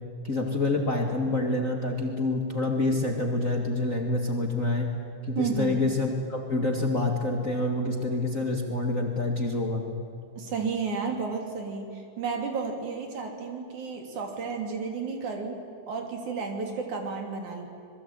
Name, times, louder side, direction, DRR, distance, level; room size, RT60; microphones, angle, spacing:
voice 1, 0.2-5.0 5.2-9.9, left 2 dB, 30° left, 2 dB, 2.0 m, -27 dB
voice 2, 5.3-5.8 10.4-15.6 15.9-17.7, right 5 dB, 70° right, 3 dB, 4.4 m, -32 dB
27.0 x 22.0 x 9.0 m, 2.5 s
omnidirectional pair, 3.6 m